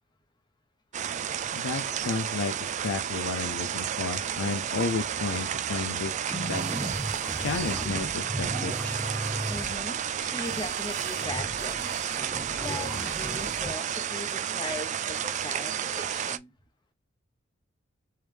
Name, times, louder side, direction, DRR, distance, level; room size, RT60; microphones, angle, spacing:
sound 1, 0.9-16.4, right 9 dB, 35° right, 0.3 m, -32 dB
voice 1, 1.5-6.1 6.5-6.6 7.4-8.8, left 4 dB, 85° left, 0.6 m, -32 dB
sound 2, 6.3-13.7, equal, 5° left, 0.7 m, -36 dB
sound 3, 6.4-7.9 8.6-9.8 10.4-11.3 11.6-12.3 12.6-13.7, right 7 dB, 60° right, 1.0 m, -44 dB
voice 2, 9.5-11.8 12.3-16.5, left 2 dB, 20° left, 1.1 m, -39 dB
3.2 x 3.2 x 3.3 m
head